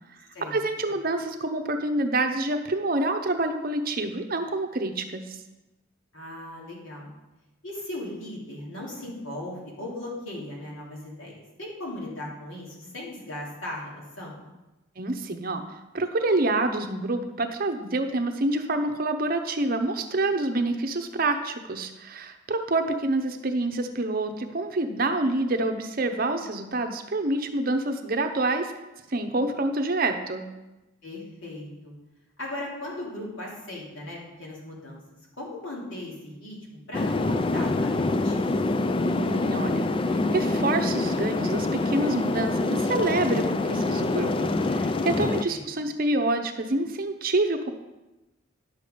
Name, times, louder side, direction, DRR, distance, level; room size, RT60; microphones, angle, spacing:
voice 1, 0.5-5.4 15.0-28.7 29.1-30.5 39.0-47.7, right 2 dB, 45° right, 6 dB, 0.7 m, -27 dB
voice 2, 6.1-7.1 7.6-14.4 31.0-31.9 32.4-35.0 35.4-38.5 45.4-45.6, left 1 dB, 65° left, -4 dB, 2.9 m, -38 dB
sound 1, 36.9-45.4, left 2 dB, 25° left, 0.3 m, -25 dB
10.5 x 6.9 x 5.1 m, 1.0 s
head